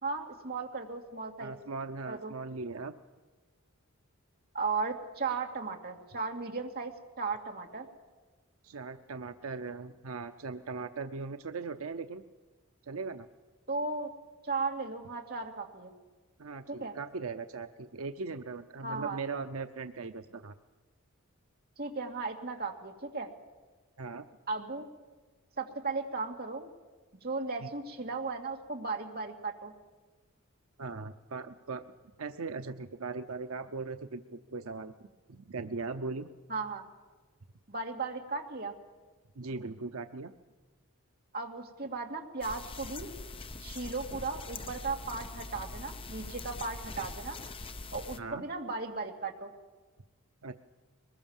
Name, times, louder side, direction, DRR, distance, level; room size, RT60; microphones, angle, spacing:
voice 1, 0.0-1.6 2.1-2.3 4.5-6.9 7.2-7.9 13.7-14.1 14.4-15.9 16.7-16.9 18.8-19.2 21.8-23.3 24.5-24.9 25.6-26.7 27.2-29.7 36.5-36.8 37.7-38.7 41.3-43.1 43.6-47.4 47.9-49.5, right 4 dB, 45° right, 2 dB, 2.3 m, -36 dB
voice 2, 1.4-3.0 8.6-12.2 12.8-13.3 16.4-20.5 24.0-24.2 27.6-27.7 30.8-31.9 32.2-34.9 35.3-36.3 39.4-40.3 48.2-48.4 50.4-50.5, right 4 dB, 85° right, 8 dB, 0.7 m, -39 dB
sound 1, 42.4-48.2, left 3 dB, 25° left, 0.8 m, -43 dB
23.0 x 20.5 x 7.3 m, 1.3 s
head